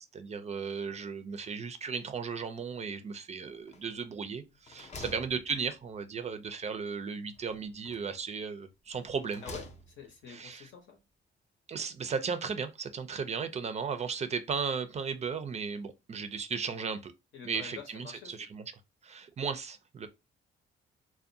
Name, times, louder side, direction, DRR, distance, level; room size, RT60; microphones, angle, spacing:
voice 1, 0.1-9.4 10.3-10.7 11.7-17.1 17.4-18.6 19.0-20.1, right 5 dB, 35° right, 0.4 m, -36 dB
sound 1, 3.7-4.2 4.5-6.1 7.4-8.2 8.9-10.2, left 2 dB, 35° left, 0.5 m, -49 dB
voice 2, 9.4-11.0 17.3-18.5, left 6 dB, 70° left, 0.9 m, -47 dB
2.5 x 2.1 x 2.5 m
cardioid pair, 90°, 20 cm